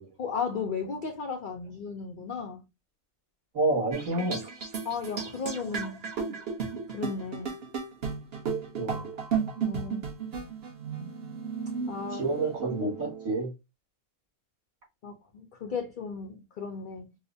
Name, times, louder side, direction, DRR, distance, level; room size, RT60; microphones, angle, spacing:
voice 1, 0.2-2.6 4.8-6.1 6.9-7.5 9.6-10.1 11.9-12.2 15.0-17.0, left 5 dB, 75° left, 0.4 m, -35 dB
voice 2, 3.5-4.4 8.7-9.0 12.1-13.5, right 2 dB, 75° right, 2.5 m, -28 dB
sound 1, 3.9-13.4, right 6 dB, 50° right, 1.0 m, -34 dB
4.8 x 2.1 x 2.6 m
omnidirectional pair, 1.5 m